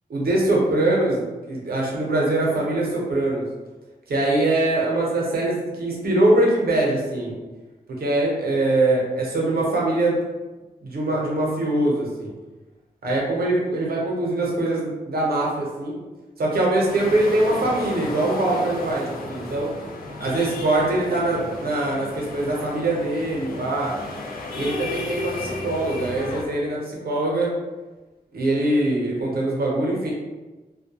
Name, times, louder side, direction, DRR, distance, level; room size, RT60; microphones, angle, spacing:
voice 1, 0.1-3.4 4.1-7.4 7.9-10.2 10.8-12.3 13.0-16.0 16.4-19.7 20.2-24.0 24.6-27.5 28.3-30.1, right 2 dB, 75° right, -3 dB, 0.7 m, -23 dB
sound 1, 16.8-26.4, left 3 dB, 70° left, 0.5 m, -34 dB
2.1 x 2.1 x 2.8 m, 1.2 s
wide cardioid pair, 150°, 16 cm